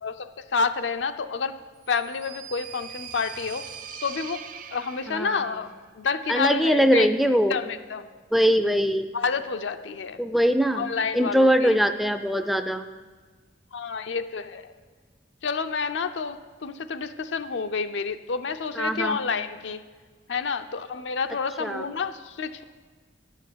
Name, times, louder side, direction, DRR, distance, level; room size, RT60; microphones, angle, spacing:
voice 1, 0.0-1.5 1.9-3.7 4.0-7.1 7.5-8.1 9.1-10.2 10.7-11.8 13.7-14.7 15.4-19.8 20.3-22.6, left 5 dB, 85° left, 9 dB, 0.6 m, -29 dB
sound 1, 1.8-5.6, right 8 dB, 50° right, 0.6 m, -41 dB
voice 2, 5.1-5.4 6.3-7.5 8.3-9.1 10.2-10.9 11.1-12.9 18.8-19.2 21.6-21.8, equal, ahead, 9 dB, 0.3 m, -22 dB
9.9 x 6.5 x 7.4 m, 1.5 s
head